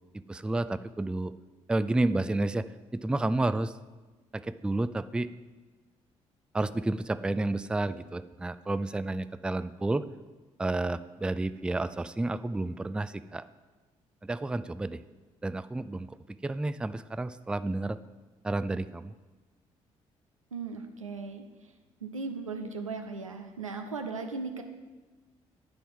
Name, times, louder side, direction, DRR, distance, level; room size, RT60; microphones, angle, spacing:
voice 1, 0.1-1.3 1.7-2.6 2.9-3.7 4.3-5.3 6.5-10.0 10.6-13.4 14.2-15.0 15.4-16.1 16.4-18.0 18.4-19.1, right 2 dB, 5° right, 14 dB, 0.3 m, -30 dB
voice 2, 20.5-21.4 22.0-24.6, right 4 dB, 85° right, 5 dB, 0.5 m, -37 dB
9.5 x 4.2 x 7.3 m, 1.3 s
figure-of-eight pair, 40°, 17 cm